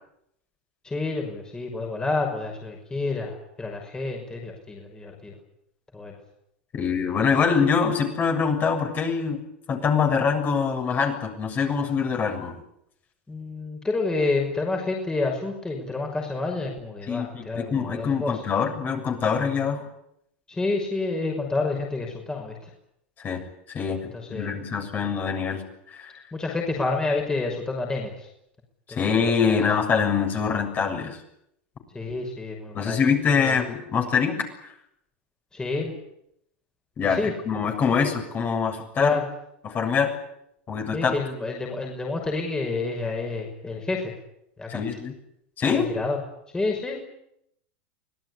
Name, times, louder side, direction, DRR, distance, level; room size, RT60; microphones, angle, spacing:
voice 1, 0.8-5.3 5.9-6.1 13.3-18.5 20.5-22.7 24.1-24.5 26.3-28.3 28.9-29.7 31.9-33.0 33.4-33.6 35.5-35.9 37.0-37.3 39.0-39.2 40.9-44.1 44.6-44.8 45.7-46.2 46.5-47.0, left 3 dB, 10° left, 1 dB, 6.0 m, -29 dB
voice 2, 6.7-9.4 9.7-12.6 17.1-19.9 23.2-23.4 23.7-24.0 24.3-25.6 25.9-26.1 28.9-31.2 32.7-34.4 37.0-39.2 39.6-40.1 40.7-41.2 44.7-45.1 45.6-45.9, left 6 dB, 30° left, 3 dB, 7.1 m, -24 dB
25.5 x 19.0 x 9.9 m, 0.78 s
supercardioid pair, 120°, 7 cm